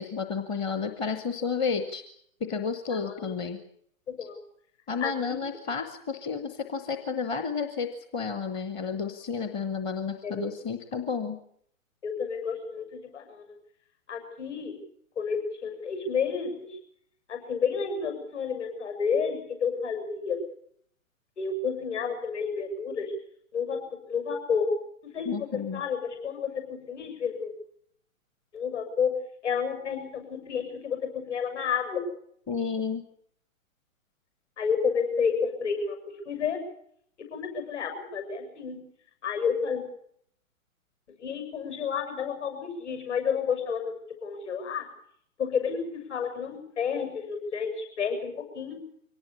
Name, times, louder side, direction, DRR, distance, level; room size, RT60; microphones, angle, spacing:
voice 1, 0.0-2.0 2.4-3.6 4.2-4.3 4.9-11.4 25.2-25.8 32.5-33.0, left 5 dB, 15° left, 8 dB, 0.9 m, -31 dB
voice 2, 2.9-3.3 4.1-4.4 5.0-5.4 10.2-10.5 12.0-13.5 14.1-14.8 15.2-16.8 17.3-20.4 21.4-23.1 23.5-23.8 24.1-24.7 25.0-27.5 28.5-29.1 29.4-32.0 34.6-36.0 36.3-36.6 37.2-38.8 39.2-39.8 41.2-43.9 44.2-44.8 45.4-48.8, left 6 dB, 55° left, 5 dB, 7.3 m, -30 dB
23.5 x 18.0 x 8.5 m, 0.67 s
figure-of-eight pair, 130°, 42 cm